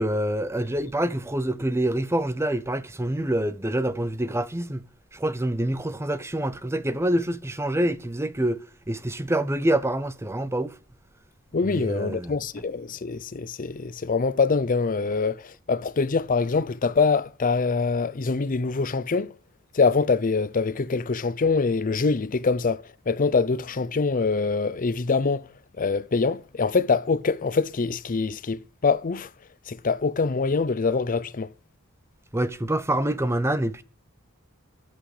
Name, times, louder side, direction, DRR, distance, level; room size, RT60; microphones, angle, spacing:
voice 1, 0.0-4.8 5.1-10.7 11.6-12.3 32.3-33.8, right 1 dB, 10° right, 0.7 m, -26 dB
voice 2, 11.5-19.3 19.7-25.5 25.8-29.3 29.7-31.5, left 4 dB, 40° left, 0.6 m, -24 dB
14.5 x 11.5 x 3.3 m
head